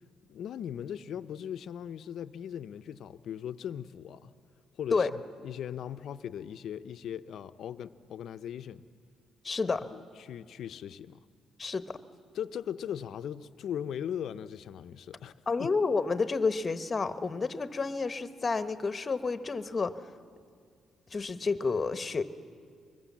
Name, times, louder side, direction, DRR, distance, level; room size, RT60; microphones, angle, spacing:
voice 1, 0.3-4.3 4.7-8.9 9.9-11.2 12.3-15.3 15.6-15.7, left 9 dB, 70° left, 0.6 m, -39 dB
voice 2, 9.4-9.8 11.6-12.0 15.5-20.1 21.1-22.2, left 4 dB, 30° left, 1.0 m, -30 dB
24.0 x 21.0 x 7.4 m
cardioid pair, 90°, 0 cm